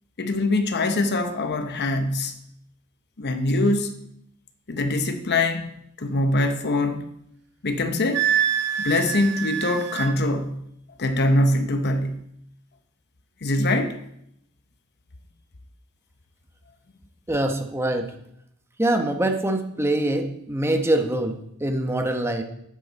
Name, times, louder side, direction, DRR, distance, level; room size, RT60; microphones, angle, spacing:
voice 1, 0.2-2.4 3.2-4.0 4.7-5.7 6.0-7.1 7.6-8.3 8.8-10.6 11.0-12.2 13.4-14.0, left 2 dB, 50° left, 0.9 m, -23 dB
Wind instrument woodwind instrument, 8.1-10.1, right 9 dB, 50° right, 0.8 m, -25 dB
voice 2, 17.3-18.1 18.8-22.4, right 1 dB, 10° right, 1.0 m, -24 dB
10.5 x 8.6 x 4.0 m
head